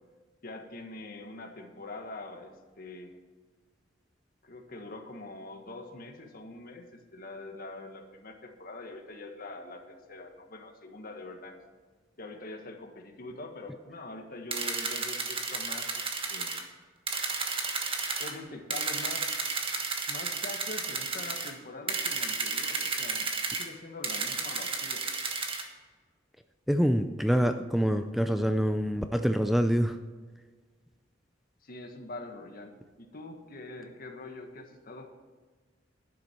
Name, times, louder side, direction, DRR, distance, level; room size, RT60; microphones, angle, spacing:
voice 1, 0.4-3.1 4.4-11.6 12.2-16.0 16.3-16.6 18.2-19.4 20.1-23.3 23.6-25.1 31.6-35.1, left 2 dB, 50° left, 4 dB, 1.5 m, -44 dB
sound 1, 14.5-16.6 17.1-18.3 18.7-21.5 21.9-23.7 24.0-25.6, right 4 dB, 30° right, 1.4 m, -32 dB
voice 2, 26.7-30.0, equal, ahead, 7 dB, 0.4 m, -26 dB
11.5 x 9.5 x 4.5 m, 1.5 s
head